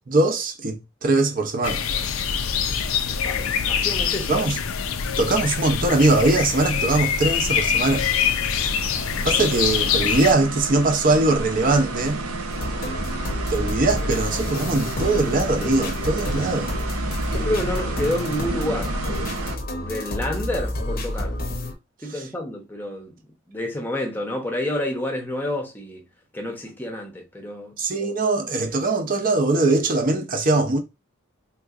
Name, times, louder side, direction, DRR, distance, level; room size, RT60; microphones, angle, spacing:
voice 1, 0.1-1.8 4.3-4.6 5.2-8.1 9.2-12.2 13.5-16.7 22.1-22.2 27.8-30.8, right 2 dB, 40° right, 0.6 m, -21 dB
sound 1, 1.6-10.3, left 7 dB, 75° left, 0.4 m, -24 dB
voice 2, 3.1-4.5 17.3-18.9 19.8-21.3 22.0-23.1 23.5-26.0 26.3-27.8, left 1 dB, 10° left, 0.7 m, -29 dB
sound 2, 7.6-19.6, right 2 dB, 80° right, 0.7 m, -31 dB
sound 3, 12.5-21.7, left 1 dB, 40° left, 0.7 m, -29 dB
3.5 x 2.9 x 2.4 m
head